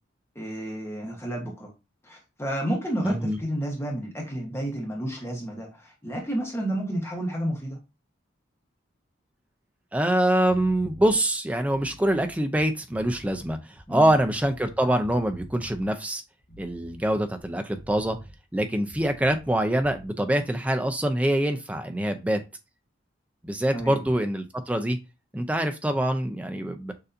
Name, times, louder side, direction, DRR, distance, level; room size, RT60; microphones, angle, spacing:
voice 1, 0.3-1.7 2.0-7.8 13.9-14.1 23.7-24.0, right 1 dB, 15° left, -1 dB, 1.0 m, -31 dB
voice 2, 3.0-3.4 9.9-13.6 13.9-16.2 16.6-18.2 18.5-22.4 23.4-25.0 25.3-26.9, right 1 dB, 5° right, 6 dB, 0.4 m, -24 dB
sound 1, 10.5-11.1 11.6-14.8 15.0-15.9 16.4-19.6 19.8-20.1, right 1 dB, 45° left, 1.3 m, -46 dB
6.6 x 2.6 x 2.6 m, 0.26 s
head